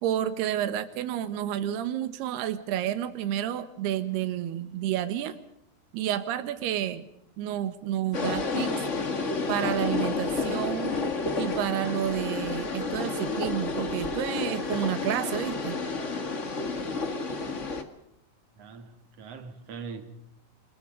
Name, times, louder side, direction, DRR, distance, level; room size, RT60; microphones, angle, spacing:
voice 1, 0.0-5.4 5.9-7.1 7.4-8.8 9.5-11.0 11.4-15.8, right 11 dB, 75° right, 3.4 m, -30 dB
sound 1, 8.1-17.8, left 3 dB, 70° left, 0.7 m, -30 dB
voice 2, 18.6-20.0, right 5 dB, 45° right, 2.7 m, -42 dB
28.5 x 22.0 x 5.2 m
omnidirectional pair, 4.7 m